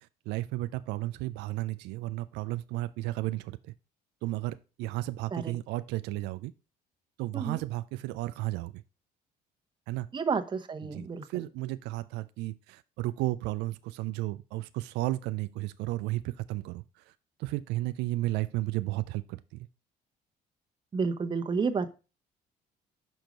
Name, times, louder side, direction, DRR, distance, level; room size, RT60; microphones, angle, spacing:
voice 1, 0.0-3.7 4.2-6.5 7.2-8.8 9.9-10.1 10.8-17.1 17.4-19.6, right 18 dB, 90° right, 0.4 m, -33 dB
voice 2, 10.1-11.5 20.9-21.9, right 5 dB, 25° right, 0.9 m, -31 dB
6.3 x 4.5 x 5.2 m
cardioid pair, 110°, 17 cm